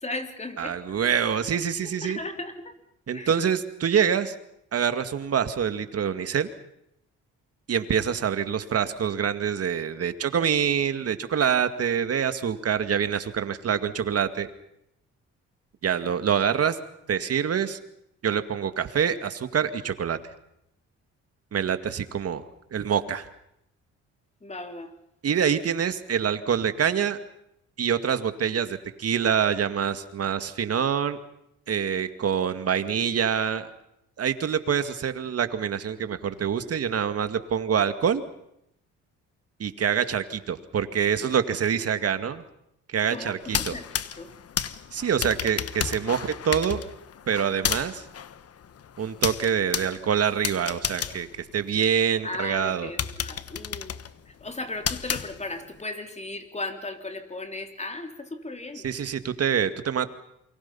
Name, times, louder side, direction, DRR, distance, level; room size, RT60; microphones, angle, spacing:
voice 1, 0.0-0.7 1.8-2.7 3.1-3.3 24.4-24.9 43.1-43.9 44.2-44.3 52.2-53.9 54.4-58.8, left 2 dB, 20° left, 6 dB, 3.6 m, -36 dB
voice 2, 0.6-2.2 3.1-4.3 4.7-6.5 7.7-14.5 15.8-16.8 17.1-17.8 18.2-20.2 21.5-22.4 22.7-23.3 25.2-27.2 27.8-31.2 31.7-33.7 34.2-38.2 39.6-42.4 42.9-43.8 44.9-46.8 47.3-48.0 49.0-52.9 58.7-60.1, right 8 dB, 50° right, 10 dB, 2.2 m, -26 dB
sound 1, 43.4-52.2 52.6-52.7 53.0-55.8, left 8 dB, 50° left, 1.3 m, -32 dB
28.5 x 24.0 x 5.6 m, 0.79 s
cardioid pair, 90°, 30 cm